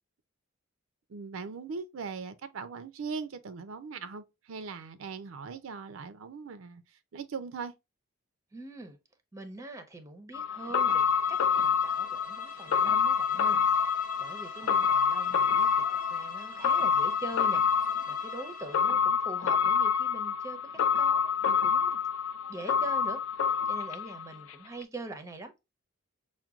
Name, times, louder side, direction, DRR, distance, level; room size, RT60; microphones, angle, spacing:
voice 1, 1.1-6.8 7.1-7.7, right 5 dB, 80° right, 0.5 m, -40 dB
voice 2, 8.5-9.0 9.3-11.0 11.3-22.0 22.5-25.5, right 2 dB, 15° right, 0.6 m, -43 dB
sound 1, 10.3-24.5 24.8-24.9, left 6 dB, 75° left, 0.4 m, -27 dB
Bowed string instrument, 10.6-19.0, left 2 dB, 50° left, 0.7 m, -47 dB
5.7 x 2.2 x 2.4 m
head